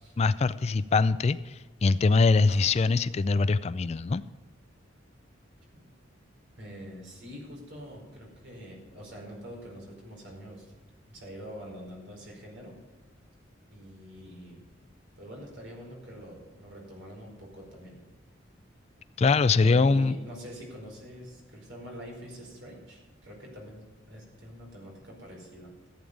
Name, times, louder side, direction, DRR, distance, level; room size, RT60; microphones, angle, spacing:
voice 1, 0.2-4.2 19.2-20.2, left 4 dB, 35° left, 15 dB, 0.3 m, -23 dB
sound 1, 2.5-6.2 6.6-6.7, left 2 dB, 50° left, 1.7 m, -55 dB
voice 2, 6.6-10.7 11.1-12.8 13.7-14.6 15.2-18.0 19.6-25.7, equal, 65° right, -1 dB, 4.8 m, -45 dB
14.5 x 8.7 x 5.2 m, 1.3 s
head